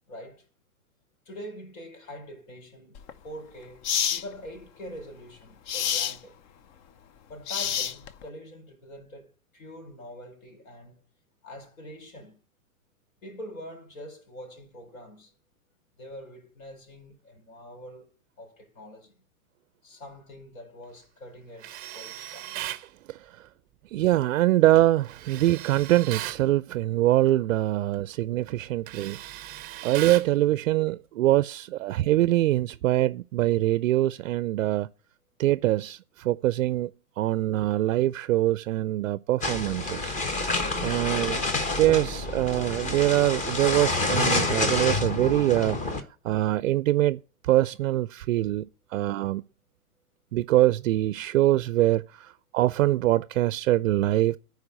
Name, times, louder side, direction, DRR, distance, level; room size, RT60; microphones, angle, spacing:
voice 1, 0.1-0.4 1.3-6.4 7.3-11.0 11.4-12.4 13.2-15.3 16.0-19.1 19.8-22.6 31.7-31.9, equal, 65° left, 5.0 m, -44 dB
sound 1, 3.0-3.1 3.8-4.2 5.7-6.2 7.5-8.2, left 9 dB, 35° left, 0.6 m, -27 dB
Tools, 21.6-22.9 25.0-26.4 27.9-28.1 28.5-30.3, right 14 dB, 20° right, 0.6 m, -37 dB
voice 2, 23.9-29.2 29.8-34.9 35.4-36.9 37.2-40.1 40.8-41.4 41.8-45.8 46.2-49.4 50.3-54.4, right 15 dB, 60° right, 0.5 m, -24 dB
sound 2, 39.4-46.0, left 2 dB, 15° left, 1.1 m, -28 dB
14.0 x 4.7 x 8.0 m
hypercardioid pair, 125°, 44 cm